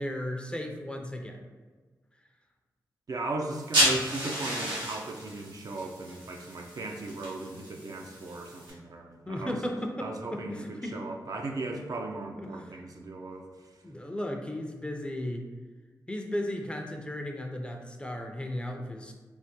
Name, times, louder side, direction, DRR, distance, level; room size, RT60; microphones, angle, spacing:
voice 1, 0.0-1.4 3.9-4.0 9.3-11.0 12.4-12.5 13.8-15.5 16.1-19.1, left 1 dB, 15° left, 2 dB, 0.5 m, -35 dB
voice 2, 3.1-9.6 10.0-13.7, right 2 dB, 55° right, 2 dB, 0.4 m, -37 dB
sound 1, 3.5-8.7, right 1 dB, 85° right, 0.9 m, -32 dB
3.3 x 2.1 x 2.8 m, 1.4 s
cardioid pair, 50°, 7 cm